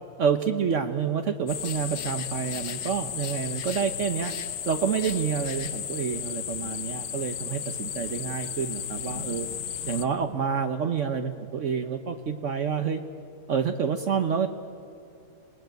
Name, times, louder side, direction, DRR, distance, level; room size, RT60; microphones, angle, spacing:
voice 1, 0.2-4.3 4.7-9.5 9.9-13.0 13.5-14.5, right 7 dB, 60° right, 7 dB, 1.2 m, -28 dB
sound 1, 1.5-10.0, left 9 dB, 65° left, 1.2 m, -34 dB
27.0 x 19.5 x 9.2 m, 2.5 s
omnidirectional pair, 1.5 m